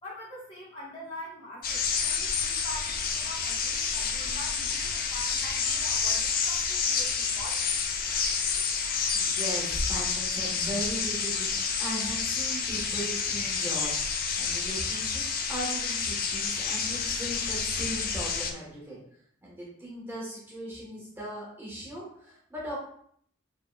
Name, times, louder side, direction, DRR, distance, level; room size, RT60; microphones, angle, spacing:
voice 1, 0.0-7.7, left 1 dB, 25° left, -8 dB, 1.5 m, -44 dB
sound 1, 1.6-18.5, left 5 dB, 45° left, 0.5 m, -29 dB
voice 2, 8.8-14.0 14.4-19.0 19.4-22.8, right 1 dB, 10° right, -6 dB, 1.5 m, -38 dB
5.1 x 4.1 x 2.5 m, 0.63 s
head